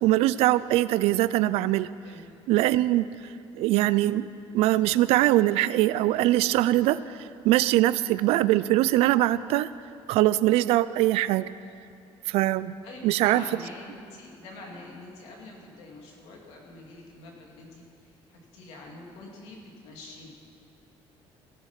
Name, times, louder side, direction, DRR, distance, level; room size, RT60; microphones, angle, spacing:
voice 1, 0.0-1.9 2.5-3.1 3.5-4.3 4.5-7.2 7.4-9.7 10.1-11.5 12.3-12.7 13.0-13.4, right 15 dB, 80° right, 16 dB, 0.4 m, -22 dB
voice 2, 12.8-20.3, left 2 dB, 85° left, 0 dB, 2.4 m, -45 dB
16.5 x 7.4 x 5.7 m, 2.5 s
cardioid pair, 160°, 10 cm